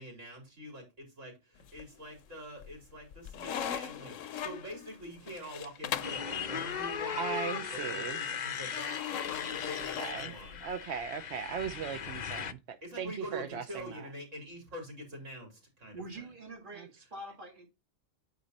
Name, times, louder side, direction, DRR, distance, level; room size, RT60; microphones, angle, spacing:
voice 1, 0.0-10.6 12.8-16.2, equal, 80° right, 4.2 m, -45 dB
sound 1, 1.6-2.2 2.6-6.3 8.7-10.8, left 9 dB, 90° left, 1.1 m, -39 dB
Motorcycle, 6.0-12.5, left 7 dB, 50° left, 0.6 m, -38 dB
voice 2, 7.2-8.2 9.8-10.3 10.6-14.1 16.8-16.9, right 7 dB, 65° right, 0.9 m, -38 dB
voice 3, 15.9-17.7, right 2 dB, 40° right, 2.4 m, -45 dB
9.4 x 4.2 x 4.1 m
omnidirectional pair, 1.3 m